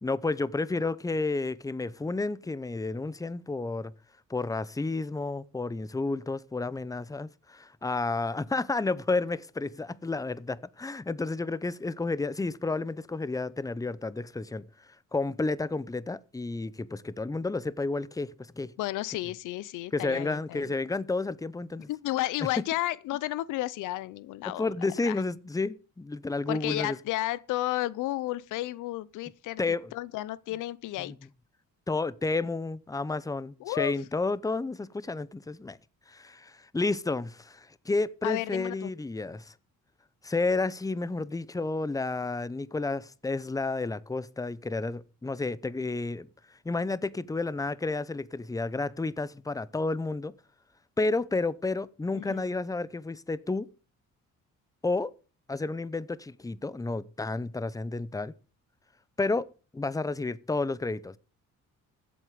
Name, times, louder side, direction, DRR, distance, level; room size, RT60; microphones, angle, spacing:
voice 1, 0.0-3.9 4.3-14.6 15.1-18.3 18.6-18.7 19.9-21.9 24.4-27.0 29.6-29.9 31.0-31.1 31.9-35.8 36.1-39.5 40.2-46.3 46.6-50.3 51.0-53.7 54.8-55.1 55.5-58.3 59.2-59.5 59.7-61.2, left 3 dB, 10° left, 0.8 m, -31 dB
voice 2, 18.8-20.7 21.9-24.7 25.1-25.2 26.5-31.1 33.6-33.9 38.2-38.9 52.1-52.5, left 16 dB, 90° left, 0.7 m, -32 dB
15.5 x 8.0 x 5.1 m
cardioid pair, 90°, 30 cm